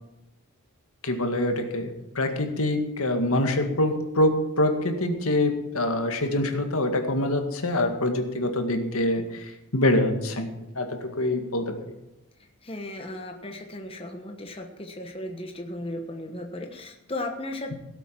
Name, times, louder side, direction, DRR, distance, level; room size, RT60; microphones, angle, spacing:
voice 1, 1.0-10.5 10.7-11.7, left 1 dB, 75° left, 5 dB, 1.9 m, -25 dB
voice 2, 12.4-17.7, left 1 dB, 25° left, 3 dB, 1.2 m, -36 dB
17.0 x 8.1 x 6.0 m, 0.96 s
head